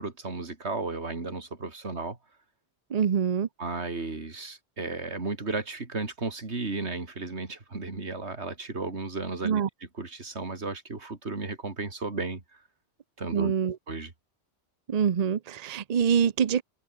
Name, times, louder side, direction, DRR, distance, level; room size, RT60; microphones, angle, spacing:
voice 1, 0.0-2.2 3.6-9.6 10.0-12.6 13.2-13.5 13.9-14.1, right 3 dB, 85° right, 3.2 m, -34 dB
voice 2, 2.9-3.5 9.4-9.7 13.3-13.8 14.9-16.6, right 7 dB, 45° right, 0.7 m, -25 dB
omnidirectional pair, 1.1 m